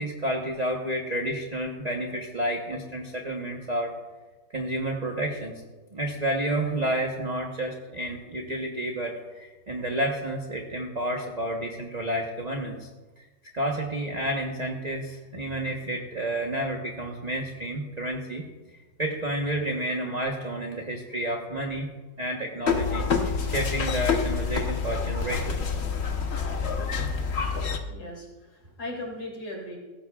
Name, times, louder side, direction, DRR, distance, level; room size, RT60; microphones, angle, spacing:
voice 1, 0.0-3.9 4.5-5.6 5.9-12.9 13.2-13.3 13.5-18.4 19.0-21.9 22.2-25.6, right 1 dB, 30° right, 1 dB, 0.9 m, -30 dB
sound 1, 22.7-27.8, left 5 dB, 45° left, 1.0 m, -27 dB
voice 2, 27.9-29.8, left 1 dB, 75° left, -2 dB, 3.8 m, -38 dB
17.0 x 15.5 x 2.4 m, 1.2 s
omnidirectional pair, 2.0 m